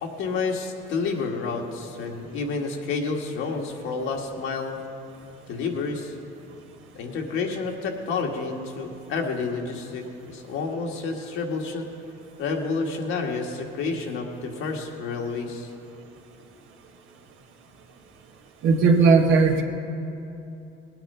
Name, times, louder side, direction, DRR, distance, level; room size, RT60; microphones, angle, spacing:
voice 1, 0.0-4.8 5.5-6.1 7.0-11.9 12.4-15.7, left 4 dB, 75° left, 1 dB, 1.8 m, -29 dB
voice 2, 18.6-19.6, right 4 dB, 70° right, 4 dB, 1.5 m, -17 dB
19.0 x 8.9 x 5.6 m, 2.8 s
cardioid pair, 95°, 21 cm